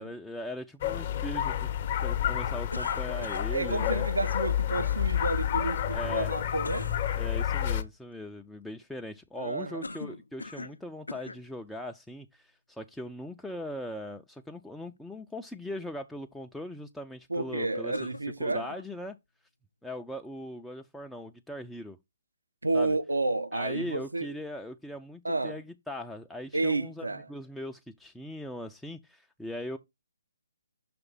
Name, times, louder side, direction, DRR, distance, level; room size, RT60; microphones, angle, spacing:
voice 1, 0.0-1.7 2.0-4.1 5.9-6.4 7.2-18.1 18.4-19.2 19.8-22.0 22.7-23.0 23.5-29.8, left 1 dB, ahead, 0.4 m, -40 dB
sound 1, 0.8-7.8, left 11 dB, 35° left, 0.7 m, -29 dB
sound 2, 2.7-3.9 6.6-7.0 9.8-10.8 11.1-11.4 12.2-12.3 17.9-18.8, left 2 dB, 75° left, 0.4 m, -41 dB
voice 2, 3.1-6.9 9.4-9.9 17.3-18.7 22.6-24.4 25.2-25.6 26.5-27.3, right 2 dB, 80° right, 0.7 m, -31 dB
5.9 x 3.2 x 5.4 m
figure-of-eight pair, 140°, 0 cm